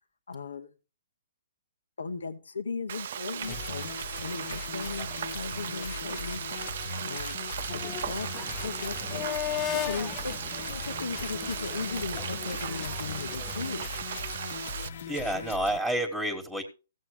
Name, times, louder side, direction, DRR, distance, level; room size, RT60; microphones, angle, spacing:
voice 1, 0.3-0.7 2.0-6.7 7.0-10.4 10.7-13.8, left 4 dB, 90° left, 1.0 m, -37 dB
Frying (food), 2.9-14.9, right 9 dB, 60° right, 0.5 m, -37 dB
sound 1, 3.4-15.8, left 5 dB, 55° left, 1.0 m, -40 dB
sound 2, 7.7-13.9, left 10 dB, 20° left, 0.4 m, -38 dB
voice 2, 15.1-16.6, right 1 dB, ahead, 1.4 m, -29 dB
16.0 x 7.5 x 3.2 m
hypercardioid pair, 145°, 0 cm